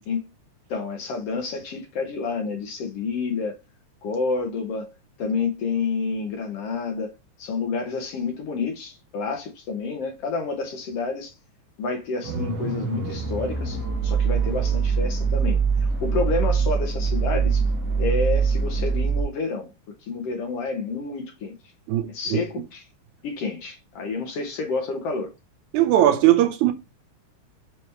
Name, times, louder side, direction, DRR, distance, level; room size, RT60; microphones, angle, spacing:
voice 1, 0.7-3.6 4.0-4.9 5.2-7.1 7.4-11.3 11.8-17.6 18.0-19.7 20.0-21.5 22.1-22.8 23.2-25.3, left 4 dB, 65° left, 1.7 m, -29 dB
sound 1, 12.2-19.2, right 5 dB, 50° right, 1.2 m, -23 dB
voice 2, 21.9-22.4 25.7-26.7, right 13 dB, 85° right, 2.1 m, -19 dB
5.6 x 3.0 x 3.2 m
omnidirectional pair, 3.3 m